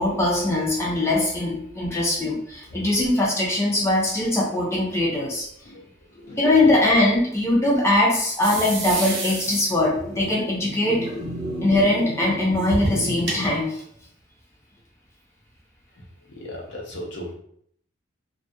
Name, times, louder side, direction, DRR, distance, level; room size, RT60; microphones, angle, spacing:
voice 1, 0.0-5.5 6.4-11.1 11.6-13.8, left 1 dB, 15° left, -3 dB, 0.5 m, -21 dB
voice 2, 6.2-6.8 16.4-17.3, equal, 65° left, -2 dB, 0.6 m, -36 dB
sound 1, 8.4-13.5, right 1 dB, 60° right, 0.8 m, -30 dB
2.3 x 2.1 x 2.6 m, 0.65 s
head